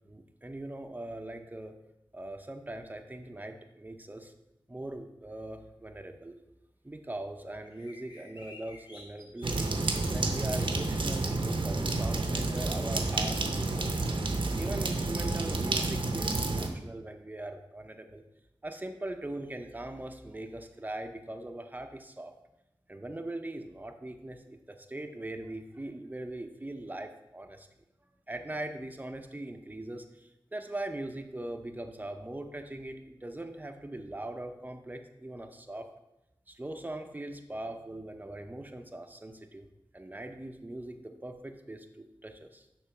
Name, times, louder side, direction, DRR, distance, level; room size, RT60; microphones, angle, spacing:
voice 1, 0.0-1.8 2.1-4.3 4.7-6.3 6.8-9.7 10.1-14.2 14.6-18.2 18.6-22.3 22.9-27.7 28.3-35.9 36.5-39.7 39.9-42.7, right 1 dB, 20° right, 6 dB, 0.7 m, -41 dB
sound 1, 7.6-9.5, left 2 dB, 70° left, 2.1 m, -51 dB
sound 2, 9.4-16.7, right 2 dB, 65° right, 0.8 m, -30 dB
6.7 x 3.1 x 5.8 m, 0.92 s
cardioid pair, 40°, 9 cm